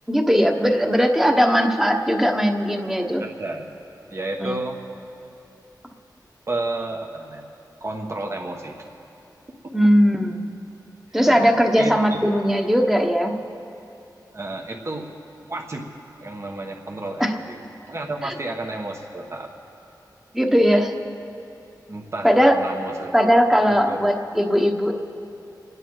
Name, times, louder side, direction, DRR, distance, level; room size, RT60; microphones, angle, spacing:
voice 1, 0.1-3.2 4.4-4.6 9.7-10.4 11.1-13.3 17.2-17.3 18.2-18.3 20.3-20.9 22.2-22.6 23.1-24.9, equal, 5° right, 3 dB, 1.2 m, -19 dB
voice 2, 3.2-3.6 4.1-4.8 6.5-7.5 7.8-8.8 11.1-12.2 14.3-15.1 15.5-15.8 16.2-17.6 17.9-19.5 21.9-23.1 23.6-24.0, right 2 dB, 40° right, 0 dB, 1.3 m, -31 dB
28.0 x 9.7 x 4.8 m, 2.8 s
wide cardioid pair, 100°, 8 cm